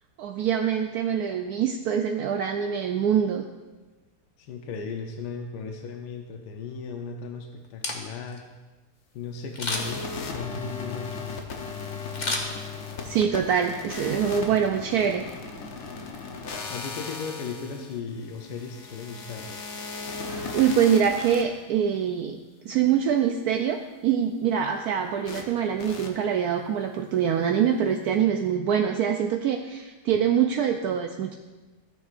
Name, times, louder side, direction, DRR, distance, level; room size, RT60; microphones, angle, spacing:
voice 1, 0.2-3.4 13.0-15.2 20.0-22.4 22.6-31.3, right 8 dB, 70° right, 4 dB, 1.0 m, -24 dB
voice 2, 4.4-8.4 9.1-11.4 16.7-19.6, left 5 dB, 80° left, 4 dB, 1.4 m, -36 dB
Camera, 7.6-8.4 9.5-10.1 12.1-13.1 13.5-13.6, left 2 dB, 35° left, 0.9 m, -31 dB
sound 1, 9.7-21.4 25.3-25.4 25.8-26.1, left 4 dB, 60° left, 1.3 m, -37 dB
14.5 x 9.7 x 2.5 m, 1.2 s
omnidirectional pair, 1.8 m